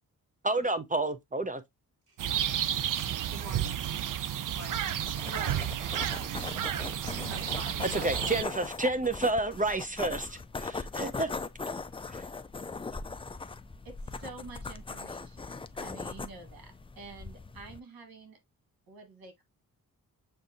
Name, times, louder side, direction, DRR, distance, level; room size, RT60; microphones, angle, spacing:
voice 1, 0.4-1.6 7.9-11.3 12.1-12.2, right 2 dB, 20° right, 0.6 m, -30 dB
sound 1, 2.2-8.4, right 10 dB, 60° right, 0.5 m, -32 dB
voice 2, 3.3-3.9 4.5-4.8 5.3-5.7 7.3-8.5, equal, 40° right, 1.7 m, -45 dB
sound 2, 5.1-17.8, left 4 dB, 15° left, 0.4 m, -40 dB
voice 3, 5.2-5.6 6.1-6.3 13.8-18.4 18.9-19.4, right 4 dB, 85° right, 1.5 m, -48 dB
6.9 x 2.7 x 2.5 m
cardioid pair, 75°, 35 cm